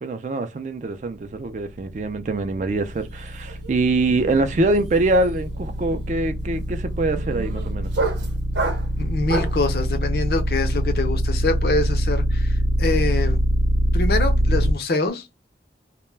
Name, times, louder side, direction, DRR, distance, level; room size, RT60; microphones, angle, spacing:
voice 1, 0.0-7.9, right 2 dB, 40° right, 0.3 m, -24 dB
sound 1, 1.4-14.7, equal, 85° left, 0.8 m, -23 dB
sound 2, 2.9-3.2 3.5-9.7, right 3 dB, 85° right, 0.7 m, -31 dB
voice 2, 9.0-13.4 13.9-15.3, left 3 dB, 60° left, 0.5 m, -25 dB
2.1 x 2.1 x 3.2 m
head